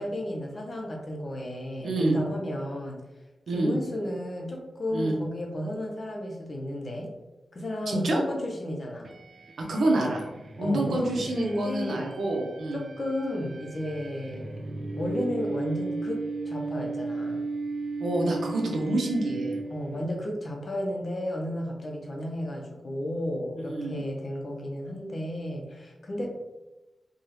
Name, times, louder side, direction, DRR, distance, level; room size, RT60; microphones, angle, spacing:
voice 1, 0.0-3.0 3.5-7.1 7.5-9.1 10.6-12.1 12.7-14.6 15.0-17.4 19.7-26.3, left 1 dB, 35° left, 1 dB, 0.6 m, -33 dB
voice 2, 1.8-2.2 3.5-3.7 4.9-5.2 7.9-8.2 9.7-10.2 10.6-12.8 18.0-19.5 23.6-24.0, right 2 dB, 75° right, 0 dB, 0.8 m, -27 dB
sound 1, 9.0-20.1, right 3 dB, 45° right, 0.3 m, -36 dB
4.7 x 2.3 x 3.1 m, 1.0 s
wide cardioid pair, 170°, 0 cm